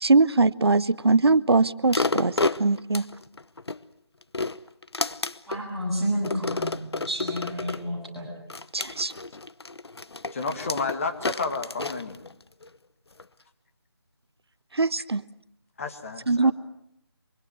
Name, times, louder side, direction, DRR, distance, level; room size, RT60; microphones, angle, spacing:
voice 1, 0.0-2.3 2.6-3.0 8.7-9.1 14.7-15.2 16.3-16.5, right 3 dB, 70° right, 17 dB, 0.9 m, -21 dB
sound 1, 1.9-3.8 4.2-5.6 6.2-7.8 8.5-12.7 13.2-13.3, left 3 dB, 70° left, 1.0 m, -30 dB
voice 2, 5.5-8.3, equal, ahead, -11 dB, 6.9 m, -30 dB
voice 3, 10.3-12.2 15.8-16.5, left 4 dB, 30° left, 5 dB, 2.1 m, -31 dB
24.5 x 24.0 x 7.8 m, 0.74 s
figure-of-eight pair, 165°, 14 cm